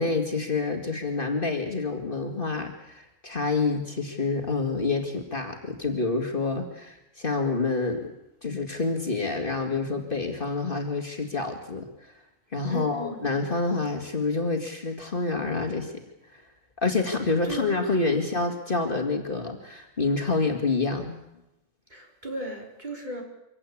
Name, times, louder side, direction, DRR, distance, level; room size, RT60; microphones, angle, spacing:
voice 1, 0.0-8.1 8.4-12.1 12.5-15.9 16.3-16.4 16.8-21.2, left 3 dB, 40° left, 4 dB, 2.4 m, -28 dB
voice 2, 12.7-13.3 17.5-17.7 21.9-23.2, right 1 dB, 35° right, 0 dB, 4.5 m, -35 dB
24.5 x 17.0 x 8.6 m, 0.91 s
omnidirectional pair, 1.4 m